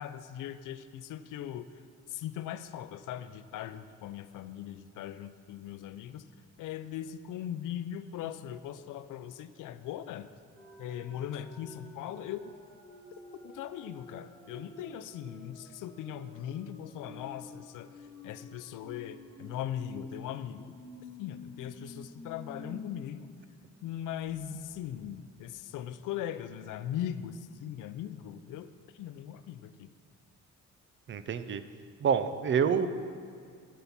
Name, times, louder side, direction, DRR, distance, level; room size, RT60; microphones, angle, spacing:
voice 1, 0.0-1.7 2.1-6.2 6.6-10.3 10.8-12.5 13.4-20.7 21.2-23.3 23.8-29.9, left 10 dB, 75° left, 12 dB, 0.6 m, -39 dB
sound 1, 10.6-23.0 23.4-23.5 23.8-26.5, left 2 dB, 10° left, 1.1 m, -50 dB
voice 2, 31.1-31.6 32.0-32.9, right 7 dB, 40° right, 11 dB, 0.5 m, -27 dB
11.5 x 5.6 x 5.9 m, 2.3 s
cardioid pair, 135°, 31 cm